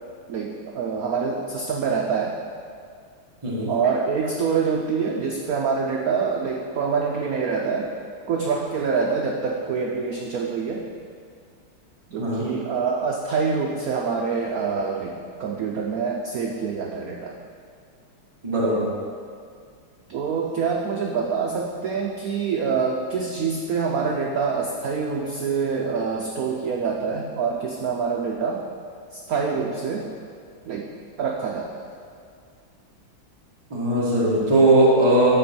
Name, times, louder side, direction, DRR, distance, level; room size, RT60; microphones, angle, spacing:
voice 1, 0.3-2.4 3.7-7.9 8.3-10.8 12.1-15.1 15.4-17.4 20.1-28.6 29.1-30.1 30.7-30.9 31.2-31.8, right 5 dB, 85° right, 0 dB, 0.7 m, -25 dB
voice 2, 18.4-18.9 33.7-35.3, right 2 dB, 15° right, -7 dB, 1.2 m, -19 dB
12.5 x 4.4 x 4.4 m, 2.2 s
omnidirectional pair, 2.3 m